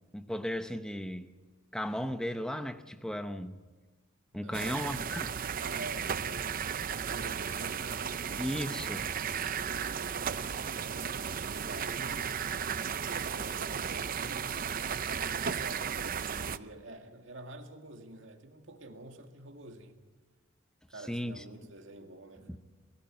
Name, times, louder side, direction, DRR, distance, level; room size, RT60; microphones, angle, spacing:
voice 1, 0.1-1.3 1.7-3.7 4.3-5.4 8.4-9.1 21.1-21.7 22.5-22.6, equal, 5° left, 0.8 m, -36 dB
voice 2, 4.3-4.8 5.6-8.1 9.6-12.4 13.1-14.6 15.4-20.0 20.9-22.6, right 2 dB, 65° right, 2.0 m, -48 dB
sound 1, 4.5-16.6, right 7 dB, 45° right, 0.6 m, -35 dB
22.0 x 13.5 x 8.9 m
head